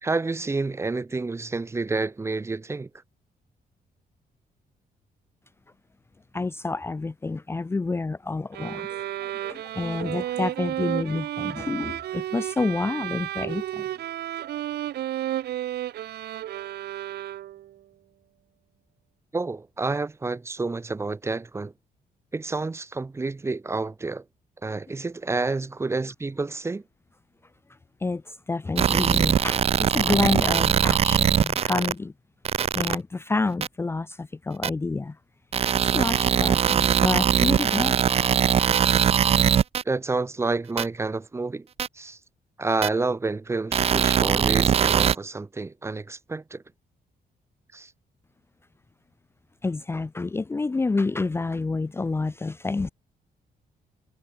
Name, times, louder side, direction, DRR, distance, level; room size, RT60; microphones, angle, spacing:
voice 1, 0.0-2.9 19.3-21.7 22.3-24.2 24.6-26.8 29.1-29.2 39.8-41.7 41.9-42.2 42.6-46.6 47.7-47.9, right 3 dB, 15° right, 1.1 m, -29 dB
voice 2, 6.3-8.9 9.4-13.8 28.0-28.2 28.5-29.6 29.9-32.1 32.8-35.1 35.9-38.0 49.6-52.9, left 3 dB, 15° left, 0.7 m, -28 dB
sound 1, 8.5-17.7, right 13 dB, 80° right, 1.3 m, -32 dB
sound 2, 28.8-31.9 32.5-33.0 33.6-33.7 34.6-34.7 35.5-39.8 40.8-40.9 41.8-41.9 42.8-42.9 43.7-45.2, right 8 dB, 40° right, 0.5 m, -21 dB
wide cardioid pair, 175°, 16 cm